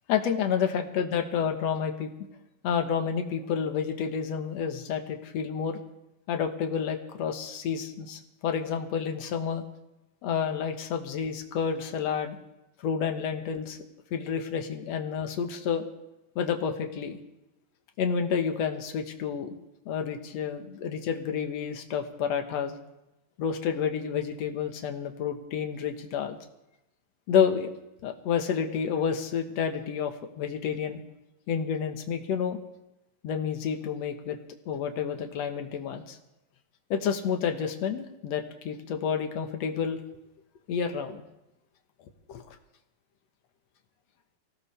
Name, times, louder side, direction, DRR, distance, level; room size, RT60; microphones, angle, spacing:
voice 1, 0.1-2.1 2.6-5.8 6.3-9.6 10.2-12.4 12.8-13.8 14.1-15.8 16.4-17.2 18.0-19.6 19.9-22.8 23.4-26.4 27.3-27.7 28.0-31.0 31.5-32.6 33.2-34.4 34.7-36.2 36.9-40.0 40.7-41.2 42.3-42.4, left 7 dB, 60° left, 5 dB, 2.2 m, -29 dB
24.0 x 17.5 x 3.4 m, 0.92 s
omnidirectional pair, 3.9 m